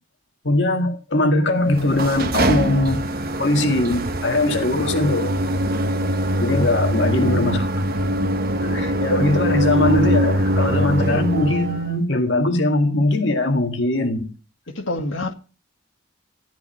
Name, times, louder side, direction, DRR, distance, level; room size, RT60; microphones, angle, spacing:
voice 1, 0.4-3.0 3.4-5.3 6.4-7.7 8.6-14.3, left 2 dB, 65° left, 2.0 m, -21 dB
sound 1, 1.6-11.9, equal, 50° right, 1.1 m, -22 dB
voice 2, 6.4-7.5 14.7-15.3, left 2 dB, 80° left, 2.1 m, -29 dB
14.5 x 10.5 x 5.7 m
head